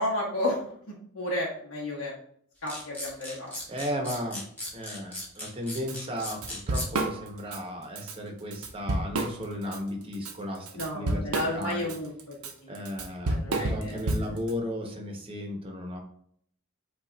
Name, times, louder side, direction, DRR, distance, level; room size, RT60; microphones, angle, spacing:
voice 1, 0.0-2.1 2.6-3.6 10.7-12.3 12.6-12.7 13.3-14.2, left 1 dB, 60° left, -6 dB, 1.1 m, -32 dB
sound 1, 2.7-6.9, left 1 dB, 10° left, 1.1 m, -37 dB
voice 2, 3.7-4.4 4.7-11.3 11.5-11.9 12.7-16.0, equal, 25° right, 1 dB, 0.8 m, -35 dB
Drum kit / Drum, 5.9-6.0 6.3-7.6 8.0-8.1 8.5-9.8 10.1-14.5, right 2 dB, 75° right, 0.7 m, -30 dB
5.5 x 2.4 x 3.9 m, 0.64 s
head